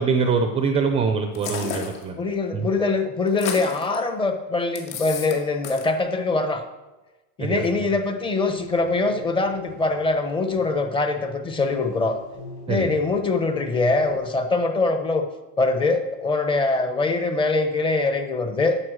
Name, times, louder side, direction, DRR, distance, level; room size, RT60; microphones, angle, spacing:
voice 1, 0.0-2.1 2.5-2.7 7.4-7.9 12.7-12.9, right 5 dB, 15° right, 5 dB, 0.4 m, -24 dB
sound 1, 1.3-2.0 3.3-4.0 4.7-5.4 5.6-5.9, left 7 dB, 75° left, 2.4 m, -32 dB
voice 2, 2.2-6.6 7.4-12.2 12.7-15.3 15.6-18.8, left 3 dB, 15° left, 7 dB, 0.7 m, -23 dB
sound 2, 8.3-14.2, left 3 dB, 50° left, 4.6 m, -43 dB
9.7 x 8.3 x 6.3 m, 1.1 s
cardioid pair, 175°, 36 cm